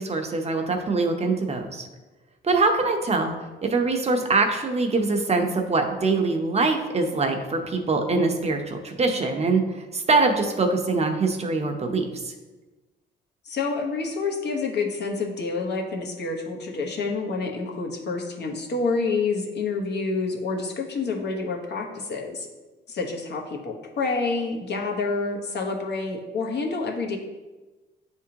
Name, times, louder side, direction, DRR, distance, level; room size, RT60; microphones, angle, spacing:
voice 1, 0.0-1.9 2.4-3.3 3.6-12.3, right 3 dB, 30° right, 4 dB, 0.8 m, -23 dB
voice 2, 13.4-22.5 22.9-27.2, left 4 dB, 60° left, 1 dB, 1.2 m, -28 dB
9.2 x 3.6 x 2.9 m, 1.2 s
cardioid pair, 90°, 20 cm